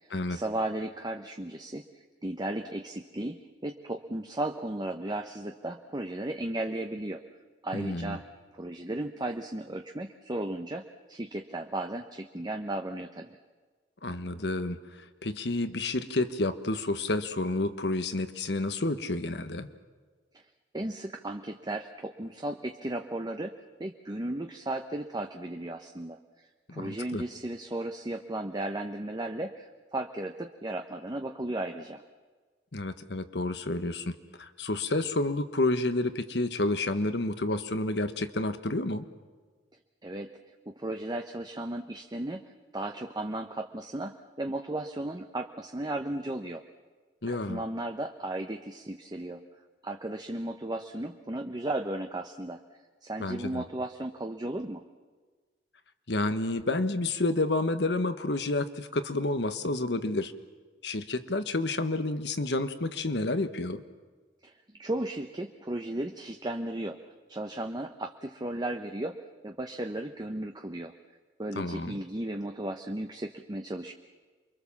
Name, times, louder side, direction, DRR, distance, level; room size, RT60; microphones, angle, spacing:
voice 1, 0.3-1.8 2.2-7.2 7.6-8.2 8.5-10.8 11.1-13.4 20.7-23.5 23.8-26.2 26.7-32.0 40.0-40.3 40.7-42.4 42.7-46.6 47.3-49.4 49.8-52.6 53.0-54.8 64.4-64.5 64.8-67.0 67.3-69.1 69.4-70.9 71.4-73.9, right 1 dB, 25° right, 4 dB, 1.0 m, -35 dB
voice 2, 7.7-8.2 14.0-14.8 15.2-19.7 26.7-27.2 32.7-39.0 47.2-47.6 53.2-53.6 56.1-60.3 60.8-63.8 71.6-72.0, left 2 dB, 70° left, 10 dB, 1.4 m, -30 dB
28.5 x 23.5 x 7.3 m, 1.4 s
head